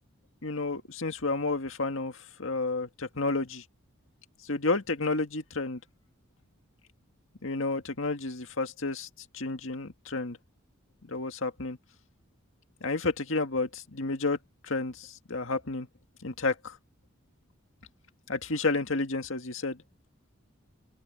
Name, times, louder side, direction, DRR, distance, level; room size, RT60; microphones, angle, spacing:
voice 1, 0.4-3.6 4.4-5.8 7.4-9.1 9.3-10.4 11.1-11.8 12.8-14.4 14.6-15.9 16.2-16.8 18.3-19.8, left 3 dB, 70° left, 2.0 m, -31 dB
head